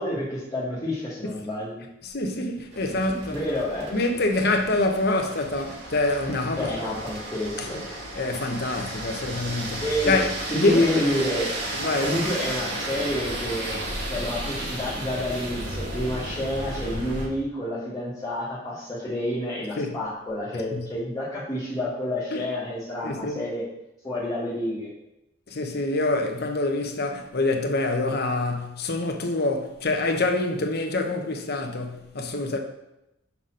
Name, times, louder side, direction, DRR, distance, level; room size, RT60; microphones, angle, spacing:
voice 1, 0.0-1.8 3.3-4.0 6.6-7.8 9.8-10.1 10.5-11.5 12.0-13.8 14.1-23.6 24.0-24.9, left 1 dB, 20° left, 1.8 m, -29 dB
voice 2, 2.0-3.4 3.9-6.7 7.6-7.7 8.2-11.0 11.8-12.2 19.8-20.0 20.7-20.8 22.3-22.4 23.0-23.4 25.5-32.6, left 2 dB, 55° left, 0.9 m, -26 dB
sound 1, 2.7-17.3, right 1 dB, 60° right, 1.7 m, -33 dB
5.9 x 4.2 x 6.3 m
head